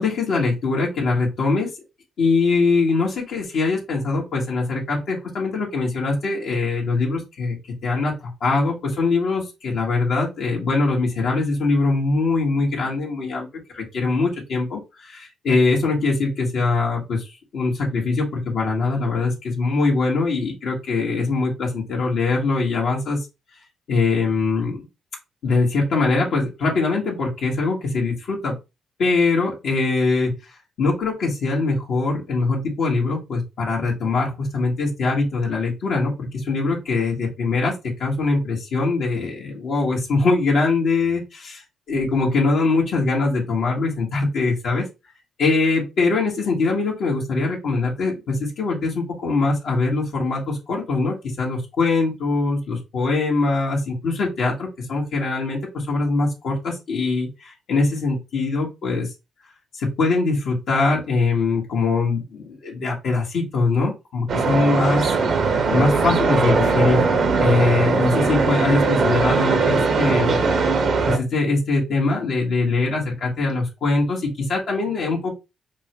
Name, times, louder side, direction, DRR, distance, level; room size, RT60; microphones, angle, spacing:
voice 1, 0.0-1.7 2.2-7.6 7.8-13.5 13.7-23.2 23.9-24.8 25.4-28.5 29.0-30.5 30.8-37.7 38.0-44.9 45.4-59.1 59.7-65.0 65.7-67.0 67.4-70.5 71.0-75.4, left 3 dB, 70° left, -3 dB, 1.3 m, -22 dB
sound 1, 64.3-71.2, right 4 dB, 60° right, 0.8 m, -20 dB
5.3 x 2.2 x 2.9 m, 0.26 s
cardioid pair, 80°, 0 cm